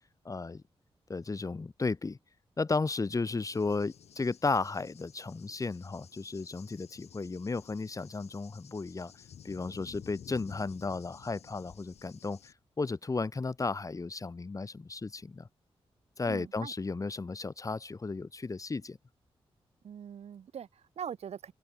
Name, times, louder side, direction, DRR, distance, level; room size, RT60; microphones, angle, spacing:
voice 1, 0.3-0.6 1.1-2.2 2.6-9.1 9.4-15.5 16.2-19.0, left 3 dB, 30° left, 1.9 m, -34 dB
Cricket / Thunder, 3.5-12.5, left 8 dB, 85° left, 1.6 m, -54 dB
voice 2, 16.3-16.7 19.8-21.5, right 8 dB, 80° right, 1.3 m, -42 dB
wide cardioid pair, 100°, 11 cm